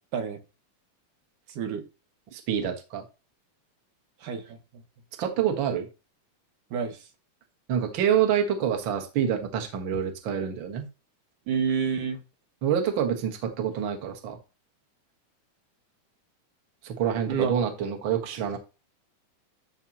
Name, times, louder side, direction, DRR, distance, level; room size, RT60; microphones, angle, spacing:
voice 1, 2.3-3.0 5.2-5.9 7.7-10.9 12.6-14.4 16.8-18.6, right 8 dB, 45° right, 4 dB, 1.9 m, -27 dB
voice 2, 4.2-4.6 6.7-7.0 11.5-12.2 17.3-17.5, right 6 dB, 85° right, 4 dB, 3.1 m, -28 dB
13.0 x 5.7 x 3.0 m, 0.30 s
omnidirectional pair, 3.7 m